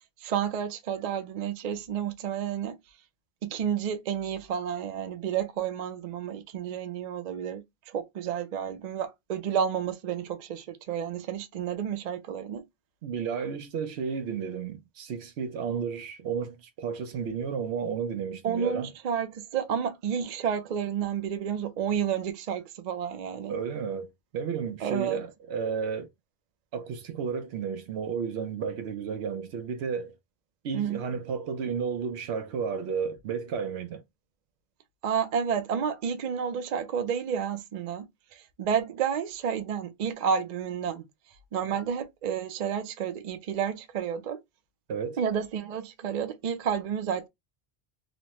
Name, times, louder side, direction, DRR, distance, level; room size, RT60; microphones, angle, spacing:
voice 1, 0.2-2.8 3.4-12.6 18.4-23.6 24.8-25.2 30.7-31.0 35.0-38.1 38.3-41.1 41.5-44.4 45.2-47.3, right 8 dB, 55° right, 0.5 m, -30 dB
voice 2, 13.0-18.9 23.5-26.1 26.7-30.2 30.6-34.0 41.7-41.8 44.9-45.2, right 6 dB, 85° right, 0.9 m, -32 dB
3.1 x 2.1 x 2.8 m
omnidirectional pair, 1.1 m